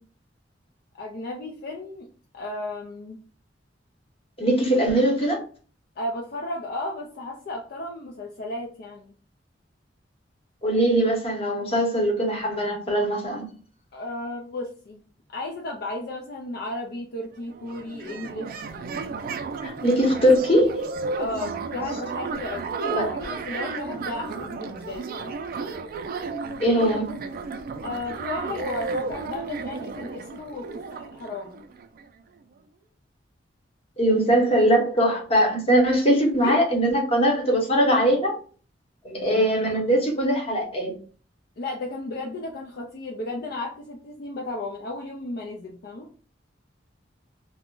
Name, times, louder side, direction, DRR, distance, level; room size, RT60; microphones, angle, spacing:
voice 1, 1.0-2.1 2.3-3.2 6.0-9.1 13.9-15.0 15.3-19.2 21.2-25.4 27.8-30.7 30.9-31.6 36.4-36.6 41.6-46.1, left 2 dB, 55° left, 0 dB, 0.4 m, -34 dB
voice 2, 4.4-5.4 10.6-13.4 19.6-20.9 22.9-23.1 26.6-27.1 34.0-38.3 39.0-40.9, equal, 35° left, 0 dB, 0.9 m, -21 dB
sound 1, 17.2-17.3 17.5-32.1, right 4 dB, 50° right, 0.4 m, -33 dB
2.3 x 2.1 x 3.6 m, 0.41 s
head